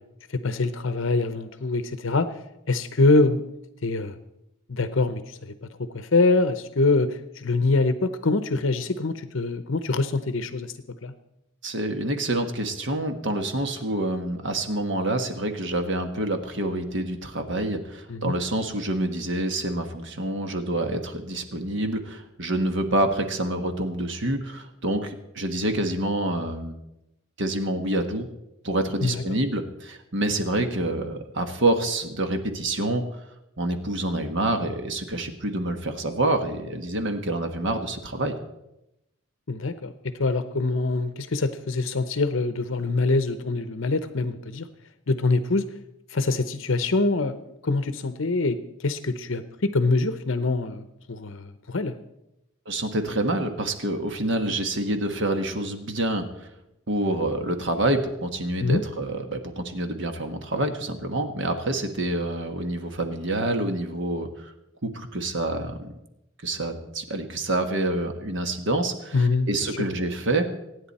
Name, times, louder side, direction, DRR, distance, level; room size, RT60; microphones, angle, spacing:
voice 1, 0.3-2.4 2.7-3.4 3.8-4.2 4.7-10.7 11.0-11.1 18.1-18.3 29.0-29.2 39.5-44.7 45.1-45.6 46.1-52.0 58.6-58.8 69.1-69.5, left 3 dB, 60° left, 11 dB, 0.8 m, -24 dB
voice 2, 11.6-26.8 27.4-28.3 28.6-33.0 33.6-38.4 52.7-56.5 56.9-64.5 64.8-65.9 66.4-70.5, right 1 dB, 60° right, 6 dB, 1.4 m, -27 dB
24.5 x 9.7 x 4.2 m, 0.88 s
head